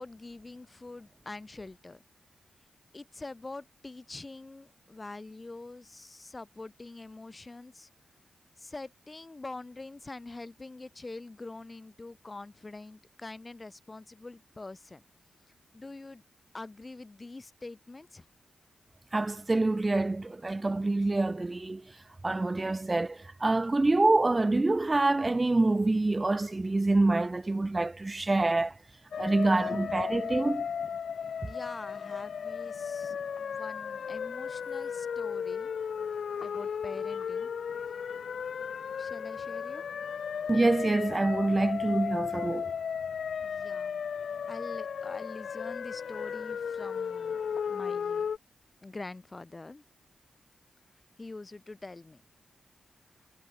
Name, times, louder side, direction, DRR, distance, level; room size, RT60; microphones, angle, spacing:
voice 1, 0.0-2.0 2.9-7.9 8.6-15.0 15.7-16.2 16.5-18.3 29.3-29.7 31.4-35.7 36.4-37.5 39.0-39.8 43.4-44.0 44.5-47.4 47.7-48.3 48.8-49.8 51.2-52.2, left 2 dB, 30° left, 8.0 m, -45 dB
voice 2, 19.1-21.8 22.2-28.7 29.2-30.7 40.5-42.7, right 2 dB, 30° right, 4.2 m, -26 dB
sound 1, 29.1-48.4, left 7 dB, 75° left, 5.6 m, -35 dB
cardioid pair, 60°, 0 cm